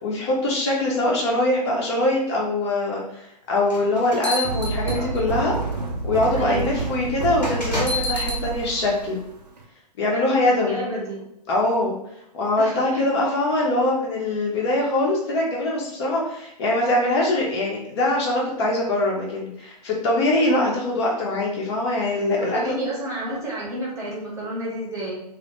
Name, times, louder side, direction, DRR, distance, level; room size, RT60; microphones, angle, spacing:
voice 1, 0.0-5.6 6.0-9.2 10.0-10.8 11.5-12.0 12.3-22.8, left 1 dB, 40° left, -2 dB, 0.6 m, -23 dB
sound 1, 3.7-5.4 6.2-6.4 7.4-8.4, left 2 dB, 85° left, 0.8 m, -28 dB
sound 2, 4.4-9.6, right 4 dB, 70° right, 0.5 m, -29 dB
voice 2, 6.3-6.7 10.1-11.2 12.6-13.1 22.3-25.2, right 1 dB, 15° right, -5 dB, 0.8 m, -30 dB
2.2 x 2.1 x 2.8 m, 0.79 s
figure-of-eight pair, 110°, 21 cm